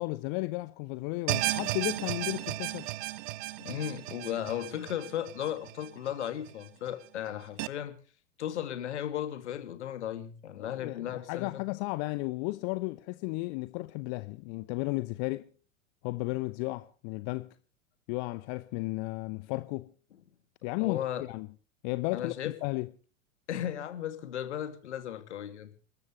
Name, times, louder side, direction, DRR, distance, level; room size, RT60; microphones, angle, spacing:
voice 1, 0.0-2.9 10.6-15.5 16.0-17.5 18.1-19.9 20.6-21.5 21.8-22.3 22.6-22.9, left 22 dB, 30° left, 0.8 m, -34 dB
sound 1, 1.3-6.5 6.9-7.0 7.6-7.7, right 18 dB, 40° right, 0.8 m, -34 dB
voice 2, 3.6-7.9 8.4-11.6 20.8-21.2 22.1-22.6 23.5-25.7, left 10 dB, 60° left, 2.6 m, -35 dB
29.5 x 13.5 x 3.3 m
figure-of-eight pair, 95°, 40 cm